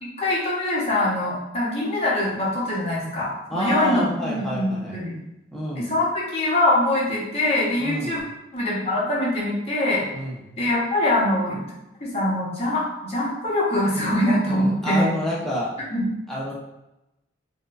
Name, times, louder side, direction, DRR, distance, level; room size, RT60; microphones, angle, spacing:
voice 1, 0.0-5.1 5.7-8.2 8.5-10.0 10.6-11.6 12.0-15.1 15.9-16.0, left 1 dB, 30° left, -6 dB, 0.9 m, -23 dB
voice 2, 3.5-5.0 5.5-5.9 7.8-8.2 10.1-10.4 14.5-15.8 16.3-16.5, equal, ahead, -6 dB, 0.6 m, -28 dB
4.2 x 2.2 x 2.4 m, 0.93 s
head